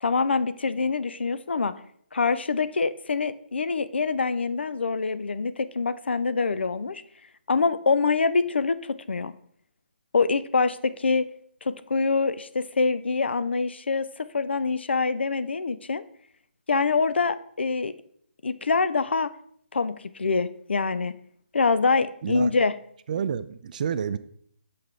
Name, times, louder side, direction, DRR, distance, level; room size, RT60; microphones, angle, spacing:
voice 1, 0.0-1.7 2.1-7.0 7.5-9.3 10.1-11.3 11.6-16.0 16.7-17.9 18.4-19.3 19.7-21.2 21.5-22.7, left 4 dB, 70° left, 13 dB, 0.4 m, -25 dB
voice 2, 23.1-24.2, right 7 dB, 45° right, 14 dB, 0.4 m, -29 dB
6.7 x 5.6 x 3.3 m, 0.65 s
figure-of-eight pair, 145°, 6 cm